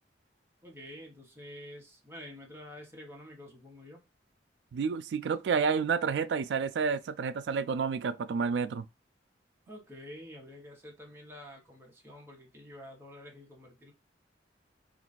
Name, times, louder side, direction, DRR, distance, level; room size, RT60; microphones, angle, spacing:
voice 1, 0.6-4.0 9.7-13.9, left 1 dB, 15° right, 0.8 m, -48 dB
voice 2, 4.7-8.9, right 5 dB, 70° right, 0.3 m, -30 dB
2.5 x 2.3 x 3.8 m
head